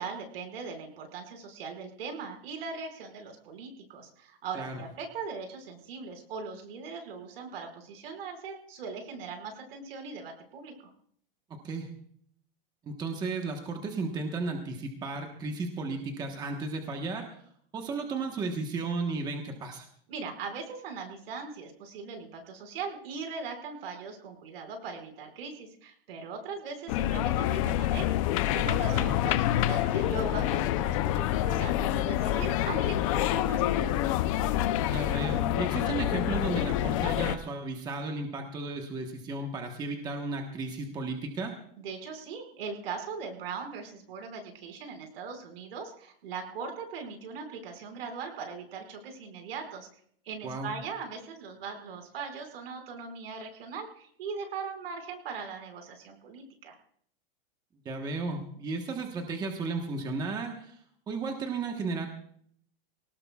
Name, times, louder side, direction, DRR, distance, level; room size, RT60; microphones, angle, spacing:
voice 1, 0.0-10.7 20.1-28.1 28.5-34.0 41.8-49.9 50.3-56.8, right 5 dB, 75° right, 4 dB, 5.4 m, -40 dB
voice 2, 12.8-17.4 17.7-19.9 28.9-29.1 34.9-41.5 50.4-50.7 57.8-60.8 61.1-62.1, right 3 dB, 15° right, 3 dB, 1.2 m, -34 dB
sound 1, 26.9-37.3, left 13 dB, 35° left, 0.6 m, -27 dB
24.0 x 18.5 x 2.4 m, 0.62 s
supercardioid pair, 170°, 30 cm